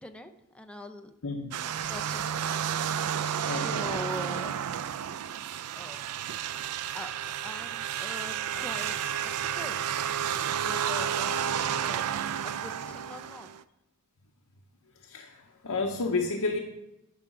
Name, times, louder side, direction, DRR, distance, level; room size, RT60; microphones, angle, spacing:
voice 1, 0.0-1.1 1.8-2.7 3.4-4.5 5.8-6.0 6.5-9.8 10.5-12.0 12.4-13.5, left 1 dB, 5° left, 6 dB, 0.6 m, -43 dB
sound 1, 1.5-13.6, right 9 dB, 80° right, 0.4 m, -31 dB
voice 2, 3.5-3.9 15.0-16.6, left 3 dB, 75° left, 2 dB, 0.8 m, -31 dB
11.0 x 4.7 x 5.9 m, 0.92 s
head